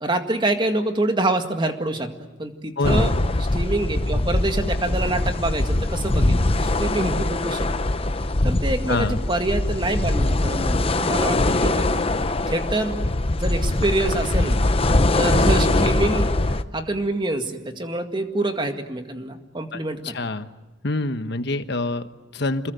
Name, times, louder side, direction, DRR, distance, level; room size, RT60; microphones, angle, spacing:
voice 1, 0.0-2.1 2.4-3.1 3.5-7.9 8.4-12.0 12.5-14.6 15.2-20.2, right 2 dB, 25° right, 6 dB, 2.0 m, -26 dB
voice 2, 2.8-3.1 8.9-9.2 19.7-19.8 20.0-20.5 20.8-22.7, left 2 dB, 60° left, 10 dB, 1.3 m, -26 dB
sound 1, 2.8-16.6, left 2 dB, 30° left, 0.9 m, -22 dB
27.5 x 21.5 x 9.4 m, 1.1 s
head